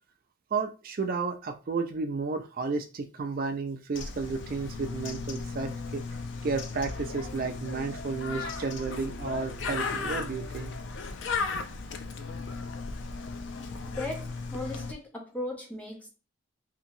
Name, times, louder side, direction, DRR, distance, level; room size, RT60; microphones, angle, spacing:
voice 1, 0.5-6.0 6.4-10.7, right 4 dB, 45° right, 6 dB, 0.4 m, -32 dB
Bird, 3.9-14.9, left 4 dB, 60° left, 0.4 m, -36 dB
voice 2, 13.9-16.1, left 1 dB, 5° left, -1 dB, 0.7 m, -37 dB
2.9 x 2.6 x 2.5 m, 0.32 s
head